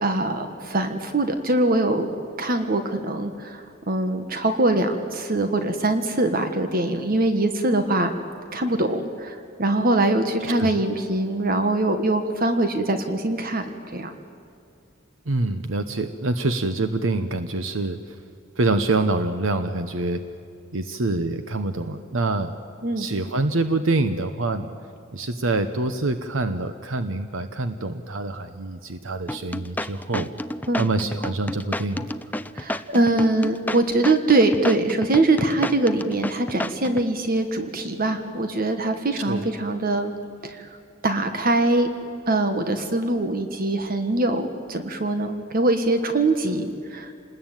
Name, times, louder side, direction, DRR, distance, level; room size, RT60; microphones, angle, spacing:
voice 1, 0.0-2.1 2.4-8.1 8.5-14.1 22.8-23.1 30.7-30.9 32.5-40.1 40.4-40.7 41.0-41.9 42.3-47.1, right 2 dB, 50° right, 7 dB, 1.5 m, -23 dB
voice 2, 15.3-18.2 18.6-20.2 20.7-22.6 23.0-24.7 25.1-30.3 30.8-32.1 39.3-39.5, right 2 dB, 85° right, 9 dB, 1.0 m, -25 dB
sound 1, 29.3-37.1, left 1 dB, 10° left, 0.6 m, -30 dB
28.0 x 20.5 x 9.1 m, 2.5 s
head